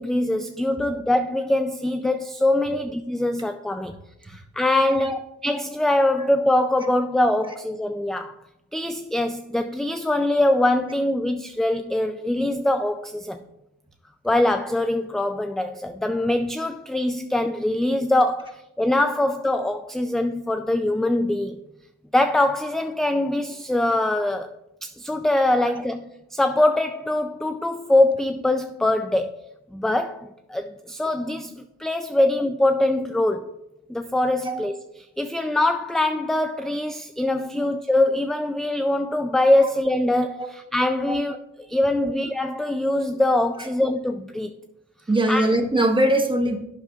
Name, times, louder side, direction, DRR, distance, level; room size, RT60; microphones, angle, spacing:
voice 1, 0.0-4.0 4.2-8.3 8.7-13.4 14.2-21.6 22.1-24.5 24.8-29.4 29.7-33.6 33.9-34.7 35.2-41.4 41.7-44.5 45.3-45.5, left 1 dB, ahead, 8 dB, 0.3 m, -23 dB
voice 2, 45.1-46.6, right 1 dB, 15° right, 3 dB, 1.3 m, -22 dB
11.0 x 8.2 x 2.4 m, 0.87 s
cardioid pair, 90°, 30 cm